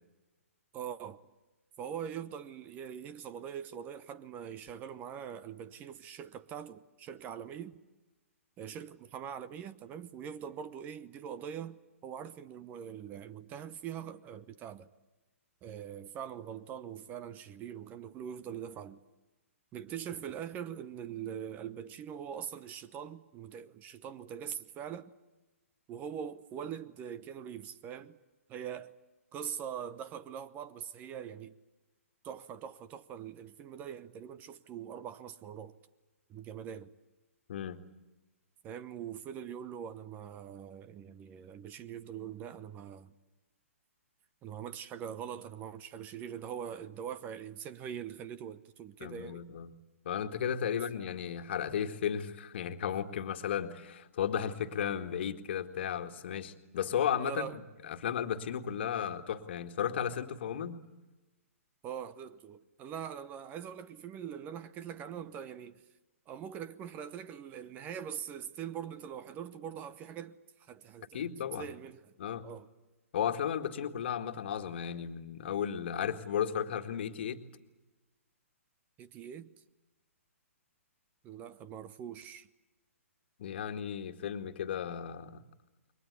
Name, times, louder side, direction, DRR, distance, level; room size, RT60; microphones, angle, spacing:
voice 1, 0.7-1.2 1.8-7.8 8.6-14.9 15.6-19.0 19.7-25.1 25.9-28.2 28.5-28.9 29.3-31.5 32.2-35.7 36.3-36.9 38.6-43.1 44.4-49.4 50.7-50.9 57.2-57.6 61.8-65.8 66.3-71.3 71.6-72.1 72.4-72.7 79.0-79.6 81.2-82.5, right 8 dB, 20° right, 0.9 m, -43 dB
voice 2, 37.5-37.8 49.0-49.8 50.1-57.5 57.8-60.8 71.1-71.7 72.2-72.5 73.1-77.4 83.4-85.4, left 8 dB, 50° left, 1.9 m, -34 dB
29.0 x 23.0 x 8.3 m
figure-of-eight pair, 125°, 8 cm